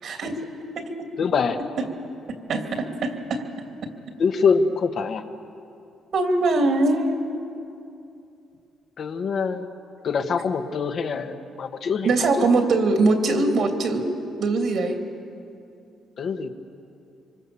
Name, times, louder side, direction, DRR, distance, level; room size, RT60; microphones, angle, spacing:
voice 1, 0.0-1.1 2.5-3.4 6.1-7.2 12.0-14.1 14.4-15.0, right 3 dB, 65° right, 4 dB, 2.9 m, -22 dB
voice 2, 1.2-1.6 4.2-5.2 9.0-9.7 10.0-12.5 16.2-16.5, left 5 dB, 60° left, 5 dB, 1.5 m, -24 dB
26.0 x 24.5 x 7.1 m, 2.7 s
cardioid pair, 90°, 0 cm